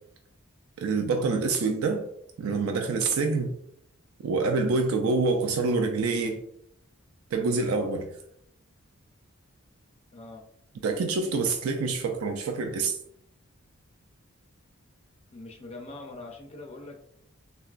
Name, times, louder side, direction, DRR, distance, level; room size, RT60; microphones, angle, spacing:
voice 1, 0.8-2.1 2.4-3.5 4.2-6.4 7.3-8.1 10.8-13.0, right 4 dB, 75° right, 5 dB, 0.3 m, -26 dB
voice 2, 10.1-10.4 15.3-17.0, left 2 dB, 30° left, 1 dB, 0.4 m, -42 dB
3.6 x 2.2 x 2.4 m, 0.72 s
head